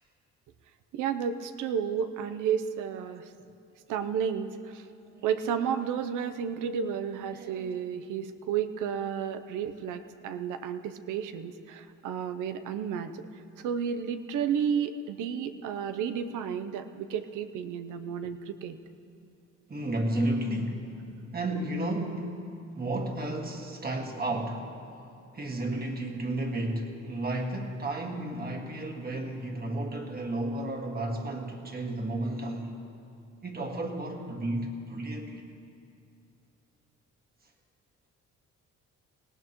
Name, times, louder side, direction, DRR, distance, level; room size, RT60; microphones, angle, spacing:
voice 1, 0.9-3.3 3.9-4.9 5.2-13.3 13.6-18.8, right 7 dB, 90° right, 9 dB, 0.8 m, -32 dB
voice 2, 7.3-7.8 19.7-20.9 21.3-22.4 22.7-24.9 25.3-32.8 33.4-35.5, right 1 dB, 30° right, 2 dB, 1.8 m, -33 dB
18.5 x 17.5 x 3.1 m, 2.6 s
cardioid pair, 90°, 30 cm